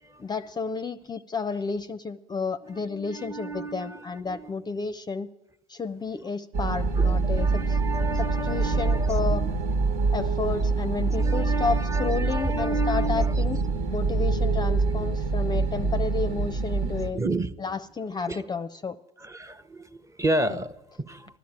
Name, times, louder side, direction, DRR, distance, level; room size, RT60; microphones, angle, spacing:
voice 1, 0.2-5.3 5.7-7.6 8.2-9.5 10.1-13.6 13.9-17.2 17.6-19.0 20.5-20.6, left 4 dB, 25° left, 0.6 m, -31 dB
voice 2, 2.7-4.5 7.0-9.5 9.9-10.1 11.0-13.7 16.8-17.5 18.3-18.4 19.2-21.4, right 2 dB, 15° right, 0.8 m, -32 dB
sound 1, 6.5-17.1, right 3 dB, 65° right, 1.5 m, -25 dB
14.5 x 11.5 x 8.8 m
hypercardioid pair, 70°, 18 cm